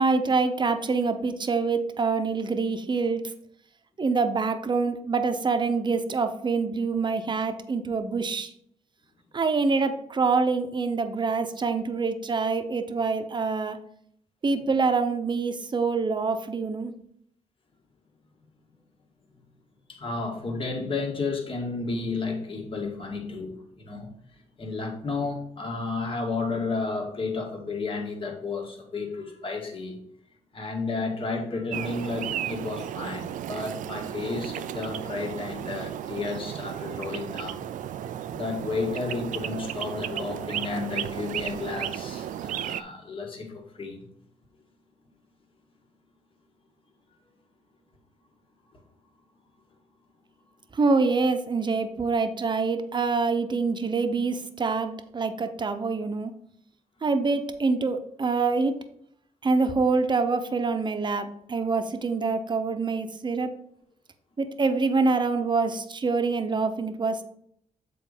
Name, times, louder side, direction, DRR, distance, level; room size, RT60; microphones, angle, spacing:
voice 1, 0.0-3.3 4.0-8.5 9.3-13.8 14.4-16.9 50.7-56.3 57.0-58.7 59.4-63.5 64.4-67.2, right 4 dB, 35° right, 8 dB, 0.8 m, -25 dB
voice 2, 19.9-24.1 24.6-30.0 30.5-37.6 38.3-44.1, left 3 dB, 45° left, 1 dB, 1.9 m, -32 dB
sound 1, 31.7-42.8, right 10 dB, 85° right, 0.4 m, -34 dB
7.5 x 4.1 x 5.0 m, 0.68 s
cardioid pair, 85°, 13 cm